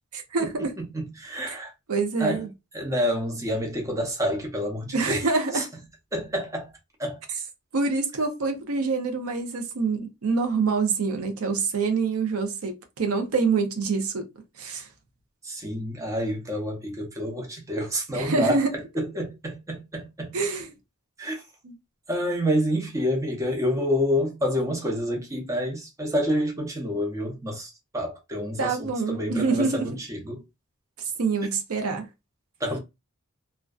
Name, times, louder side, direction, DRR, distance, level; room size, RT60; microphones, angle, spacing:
voice 1, 0.1-0.7 1.5-1.6 1.9-2.5 4.9-5.7 7.7-14.2 14.6-14.9 18.1-18.8 20.3-20.7 21.6-21.7 28.6-29.8 31.2-32.1, right 4 dB, 80° right, 0.6 m, -26 dB
voice 2, 0.8-1.7 2.2-2.4 2.7-5.3 5.5-5.7 6.1-6.7 7.0-7.2 15.4-20.3 21.2-21.4 22.1-30.4 32.6-32.8, equal, 15° right, 0.6 m, -28 dB
2.4 x 2.2 x 2.3 m
head